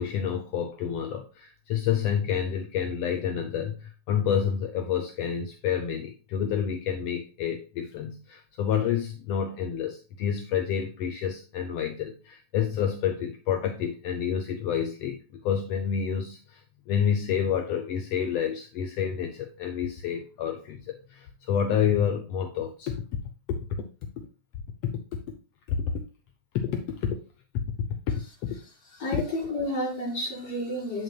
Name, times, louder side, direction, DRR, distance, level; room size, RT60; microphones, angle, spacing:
voice 1, 0.0-23.0 23.5-23.6 24.2-24.3 24.8-25.2 25.7-25.8 26.5-27.2 27.5-28.6 29.1-29.2, left 8 dB, 75° left, 5 dB, 1.5 m, -29 dB
voice 2, 28.9-31.0, left 1 dB, 55° left, -7 dB, 5.4 m, -31 dB
9.1 x 6.4 x 2.2 m, 0.34 s
omnidirectional pair, 3.5 m